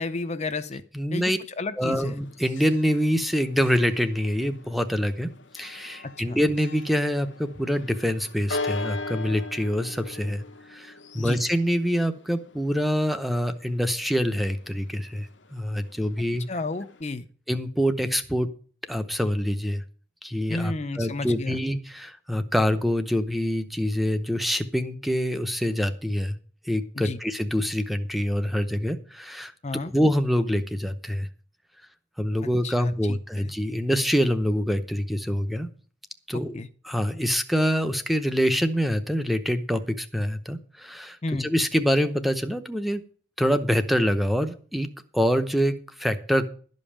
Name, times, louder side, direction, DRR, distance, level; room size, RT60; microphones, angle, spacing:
voice 1, 0.0-0.8 1.1-2.2 6.0-6.4 11.2-11.4 16.5-17.3 20.5-21.6 26.9-27.2 29.6-29.9 32.6-33.5 36.3-36.7 41.2-41.5, left 3 dB, 35° left, 10 dB, 0.6 m, -32 dB
voice 2, 0.9-1.4 1.8-16.4 17.5-18.5 18.9-19.8 20.2-26.4 26.7-29.5 29.9-31.3 32.2-35.7 36.3-43.0 43.4-44.9 45.1-46.5, equal, ahead, 9 dB, 0.7 m, -25 dB
Church bell, 1.9-17.0, left 3 dB, 80° left, 1.0 m, -40 dB
12.0 x 5.3 x 8.6 m, 0.43 s
head